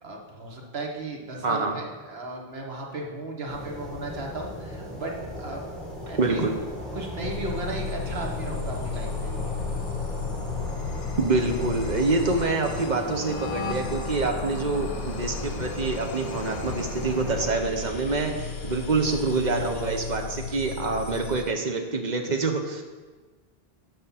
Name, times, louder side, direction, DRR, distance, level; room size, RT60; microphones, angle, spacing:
voice 1, 0.0-5.6 6.1-6.4 6.9-9.3, right 2 dB, 80° right, 0 dB, 1.5 m, -35 dB
voice 2, 1.4-1.8 6.2-6.5 11.2-22.8, right 3 dB, 50° right, 3 dB, 0.9 m, -26 dB
sound 1, 3.5-17.5, equal, ahead, 1.7 m, -37 dB
sound 2, 7.2-21.5, left 5 dB, 80° left, 1.1 m, -34 dB
7.5 x 5.4 x 5.7 m, 1.3 s
omnidirectional pair, 1.0 m